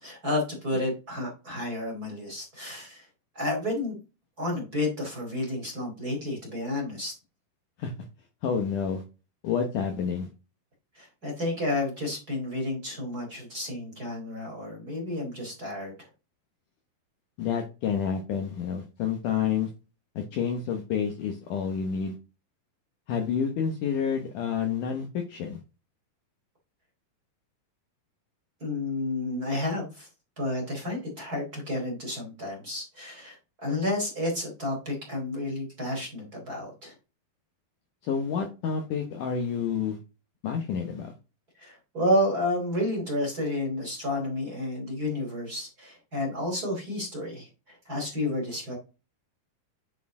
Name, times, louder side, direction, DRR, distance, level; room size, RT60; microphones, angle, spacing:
voice 1, 0.0-3.1 3.3-4.0 4.4-7.1 10.9-15.9 28.6-30.1 30.4-36.9 41.6-48.8, left 1 dB, 30° right, -1 dB, 2.3 m, -31 dB
voice 2, 8.4-9.0 9.4-10.3 17.4-19.7 20.2-22.1 23.1-25.6 38.0-40.0 40.4-41.1, left 7 dB, 70° left, 4 dB, 2.0 m, -29 dB
9.4 x 4.3 x 3.7 m, 0.30 s
omnidirectional pair, 4.6 m